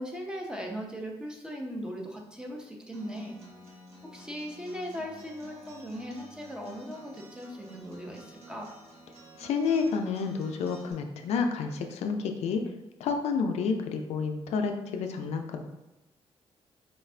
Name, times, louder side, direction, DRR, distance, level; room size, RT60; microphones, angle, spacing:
voice 1, 0.0-3.4 4.1-8.7, equal, 5° right, 0 dB, 0.6 m, -38 dB
Acoustic guitar, 2.9-10.9, right 1 dB, 75° right, 0.9 m, -51 dB
voice 2, 9.4-12.6 13.0-15.6, left 5 dB, 80° left, 5 dB, 0.4 m, -29 dB
4.3 x 2.4 x 3.2 m, 0.95 s
cardioid pair, 115°, 11 cm